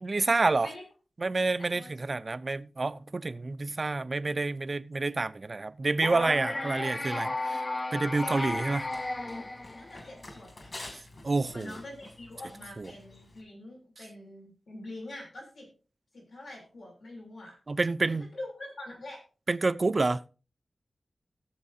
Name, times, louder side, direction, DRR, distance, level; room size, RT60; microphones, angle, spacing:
voice 1, 0.0-0.7 1.2-7.6 7.9-8.8 11.2-11.7 12.8-12.9 17.7-18.3 19.5-20.3, right 3 dB, 35° right, 0.5 m, -28 dB
voice 2, 1.6-1.9 6.4-6.6 8.2-8.7 9.7-10.7 11.5-15.7 16.1-17.6 18.0-19.2, left 1 dB, 85° left, 6.5 m, -44 dB
sound 1, 6.0-10.2, left 2 dB, 25° left, 0.5 m, -34 dB
Run, 8.2-13.4, left 2 dB, 45° left, 2.5 m, -49 dB
20.0 x 7.3 x 2.7 m
wide cardioid pair, 135°, 0 cm